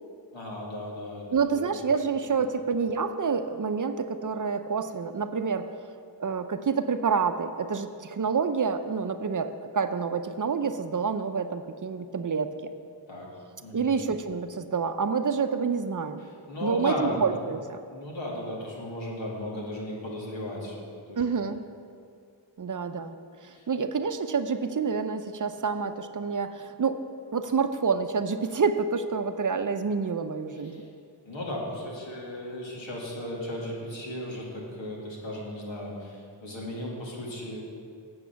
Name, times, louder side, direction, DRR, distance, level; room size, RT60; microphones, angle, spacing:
voice 1, 0.3-1.8 13.1-13.3 13.6-13.9 16.2-17.4 17.8-21.2 23.5-23.7 30.5-30.9 31.2-37.6, left 1 dB, 80° left, -3 dB, 2.3 m, -36 dB
voice 2, 1.3-5.7 6.2-12.7 13.7-16.2 16.6-17.8 21.2-21.6 22.6-23.1 23.4-30.8, right 5 dB, 45° right, 9 dB, 0.6 m, -28 dB
8.5 x 6.9 x 6.8 m, 2.3 s
cardioid pair, 55°, 44 cm